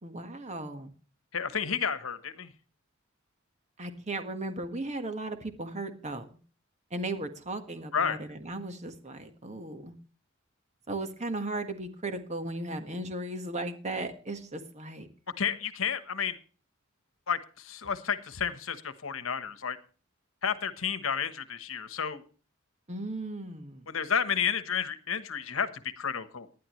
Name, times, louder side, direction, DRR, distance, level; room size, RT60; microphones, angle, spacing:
voice 1, 0.0-0.9 3.8-6.3 6.9-9.9 10.9-15.1 22.9-23.8, right 2 dB, 35° right, 8 dB, 1.6 m, -36 dB
voice 2, 1.3-2.5 7.9-8.2 15.4-16.4 17.3-19.8 20.4-22.2 23.9-25.7 26.0-26.5, left 7 dB, 75° left, 12 dB, 1.2 m, -31 dB
19.0 x 11.0 x 3.2 m, 0.38 s
head